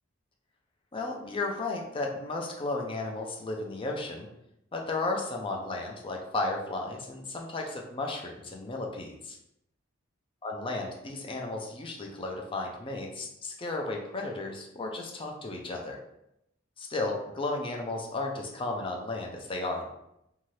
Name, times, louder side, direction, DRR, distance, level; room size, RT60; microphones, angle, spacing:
voice 1, 0.9-4.3 4.7-9.4 10.4-16.0 16.8-19.9, left 2 dB, 25° left, 1 dB, 0.4 m, -34 dB
2.7 x 2.4 x 3.1 m, 0.81 s
head